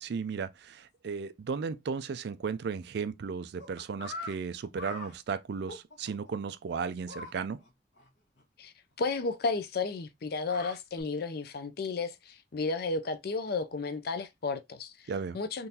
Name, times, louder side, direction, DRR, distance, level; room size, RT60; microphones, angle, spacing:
voice 1, 0.0-7.6 15.1-15.4, right 5 dB, 60° right, 0.4 m, -35 dB
sound 1, 3.6-4.4 4.8-5.1 5.7-6.3 7.1-7.3 7.6-7.7 8.0-8.1 8.4-8.5 10.2-11.0, left 3 dB, 70° left, 1.2 m, -42 dB
voice 2, 9.0-14.9 15.3-15.7, left 4 dB, 55° left, 0.5 m, -33 dB
3.7 x 2.5 x 2.8 m
head